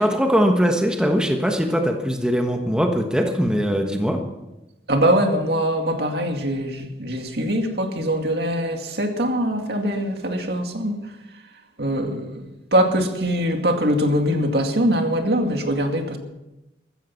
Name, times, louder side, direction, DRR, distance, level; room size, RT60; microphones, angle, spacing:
voice 1, 0.0-4.2, equal, 5° right, 3 dB, 1.2 m, -21 dB
voice 2, 4.9-11.0 11.8-16.2, equal, 65° right, 4 dB, 2.3 m, -22 dB
14.5 x 14.5 x 5.8 m, 0.98 s
head